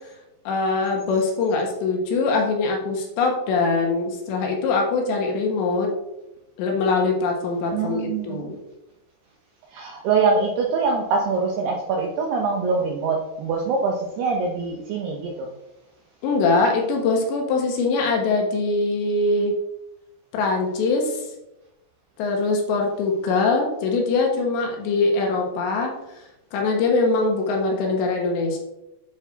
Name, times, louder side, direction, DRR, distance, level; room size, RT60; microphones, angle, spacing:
voice 1, 0.4-5.9 6.6-8.6 16.2-19.5 20.3-21.3 22.2-25.9 26.5-28.6, left 3 dB, 70° left, 1 dB, 3.1 m, -22 dB
voice 2, 7.7-8.4 9.7-15.5, right 4 dB, 80° right, 1 dB, 2.4 m, -24 dB
9.6 x 6.1 x 4.0 m, 0.93 s
omnidirectional pair, 5.8 m